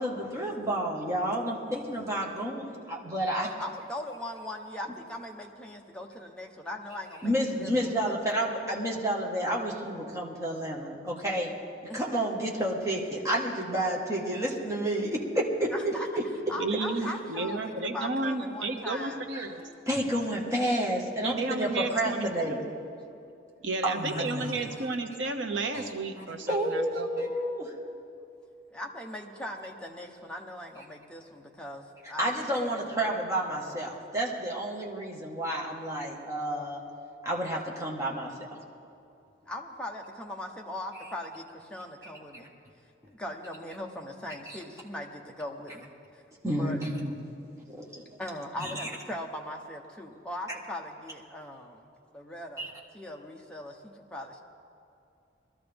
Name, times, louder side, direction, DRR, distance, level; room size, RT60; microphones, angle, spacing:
voice 1, 0.0-3.5 7.2-11.6 11.9-15.1 15.6-15.9 19.3-19.5 19.9-22.6 23.8-24.5 26.5-27.7 32.2-36.8 37.2-38.3 44.5-44.6 46.4-47.1 47.7-48.0 48.6-48.9 52.6-52.7, right 1 dB, 15° right, -3 dB, 1.6 m, -30 dB
voice 2, 3.6-8.1 11.9-12.1 15.7-16.1 16.5-19.2 28.7-33.2 39.5-42.5 43.1-46.2 46.6-46.8 47.6-47.7 48.2-52.6 52.9-54.4, left 1 dB, 5° left, 0 dB, 1.0 m, -40 dB
voice 3, 16.6-19.7 21.2-22.6 23.6-27.2, right 3 dB, 75° right, 5 dB, 1.0 m, -32 dB
22.0 x 13.0 x 3.5 m, 2.6 s
head